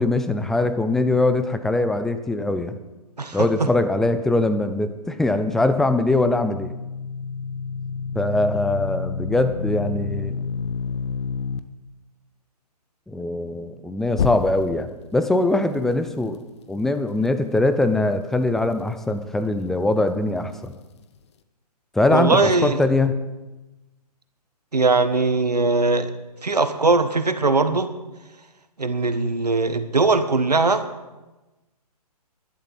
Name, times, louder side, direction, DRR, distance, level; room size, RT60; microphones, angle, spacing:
voice 1, 0.0-2.8 3.3-6.7 8.1-10.4 13.1-16.4 16.7-20.7 21.9-23.2, left 2 dB, ahead, 9 dB, 0.4 m, -22 dB
sound 1, 5.8-11.6 14.1-14.9, left 6 dB, 45° left, 0.9 m, -29 dB
voice 2, 22.1-22.8 24.7-26.1 26.4-27.9 28.8-30.8, right 3 dB, 80° right, 10 dB, 1.5 m, -20 dB
12.0 x 11.5 x 7.3 m, 1.1 s
figure-of-eight pair, 130°, 20 cm